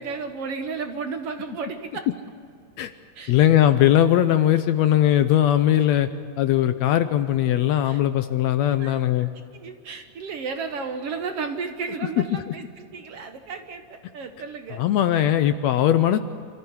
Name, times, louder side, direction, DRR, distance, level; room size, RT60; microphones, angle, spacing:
voice 1, 0.0-2.1 3.2-3.3 7.8-8.0 8.8-9.0 9.5-14.8, right 5 dB, 60° right, 6 dB, 1.8 m, -33 dB
voice 2, 3.3-6.1 6.4-9.3 12.3-12.4 14.8-16.2, left 11 dB, 75° left, 10 dB, 1.7 m, -19 dB
27.0 x 14.0 x 9.6 m, 2.3 s
omnidirectional pair, 3.6 m